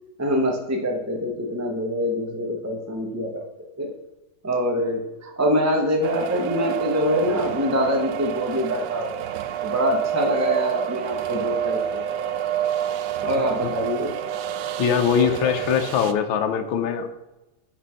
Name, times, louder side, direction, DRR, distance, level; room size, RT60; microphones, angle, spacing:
voice 1, 0.2-3.4 3.8-3.9 4.4-9.2 9.6-12.0 13.2-14.1, equal, 20° right, 2 dB, 0.4 m, -24 dB
sound 1, 6.0-16.1, right 10 dB, 75° right, 1.1 m, -28 dB
voice 2, 14.8-17.1, left 7 dB, 80° left, 5 dB, 1.6 m, -22 dB
9.1 x 4.3 x 5.6 m, 0.99 s
omnidirectional pair, 2.2 m